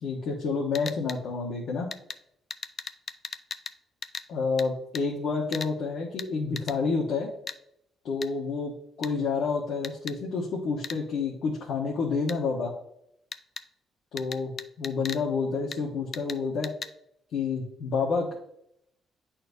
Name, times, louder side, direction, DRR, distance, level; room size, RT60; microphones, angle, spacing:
voice 1, 0.0-1.9 4.3-7.3 8.0-12.7 14.1-14.5 14.8-16.7 17.3-18.3, left 4 dB, 75° left, -3 dB, 1.3 m, -29 dB
sound 1, 0.7-1.2 1.9-2.2 2.5-3.8 4.0-4.3 4.6-4.7 4.9-5.0 5.5-5.7 6.2-6.3 6.6-6.8 7.5-7.6 8.2-8.3 9.0-9.1 9.8-10.2 10.8-11.0 12.3-12.4 13.3-13.6 14.2-15.2 15.7-15.8 16.1-16.4 16.6-16.9, left 5 dB, 45° left, 0.4 m, -37 dB
9.3 x 4.3 x 2.7 m, 0.74 s
cardioid pair, 90°, 0 cm